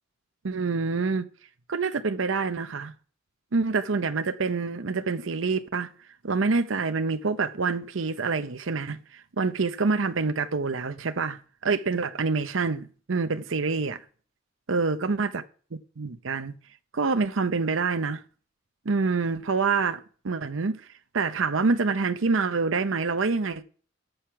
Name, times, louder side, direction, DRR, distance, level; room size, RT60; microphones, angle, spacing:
voice 1, 0.4-1.3 1.7-2.9 3.5-5.9 6.2-14.0 14.7-15.4 15.7-16.5 16.9-18.2 18.9-20.8 21.1-23.6, right 4 dB, 70° right, 0.7 m, -26 dB
13.5 x 6.4 x 5.8 m
head